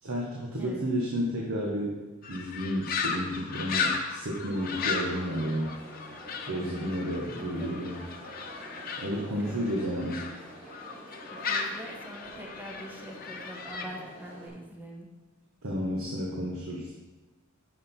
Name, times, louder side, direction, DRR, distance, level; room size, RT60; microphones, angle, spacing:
voice 1, 0.0-1.9 2.3-5.8 6.5-8.0 9.0-10.3 15.6-16.9, equal, 80° right, -2 dB, 1.3 m, -31 dB
sound 1, 2.2-10.3 10.7-13.8, left 5 dB, 45° left, 0.9 m, -35 dB
Crowd, 4.5-14.5, equal, 30° right, 2.0 m, -47 dB
voice 2, 6.5-7.7 9.0-9.8 11.3-15.1, equal, 10° right, 0 dB, 1.1 m, -44 dB
8.9 x 6.7 x 4.3 m, 1.2 s
head